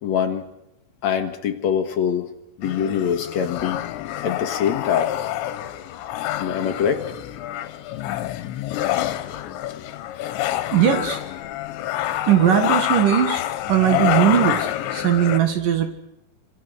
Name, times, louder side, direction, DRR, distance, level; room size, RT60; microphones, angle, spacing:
voice 1, 0.0-0.4 1.0-2.3 2.6-3.8 4.2-5.1 6.4-7.1, left 8 dB, 60° left, 6 dB, 1.9 m, -23 dB
sound 1, 2.6-15.4, left 13 dB, 85° left, 3.4 m, -27 dB
voice 2, 10.7-11.2 12.3-15.9, right 10 dB, 60° right, 7 dB, 2.8 m, -19 dB
27.0 x 26.0 x 6.6 m, 0.86 s
omnidirectional pair, 5.1 m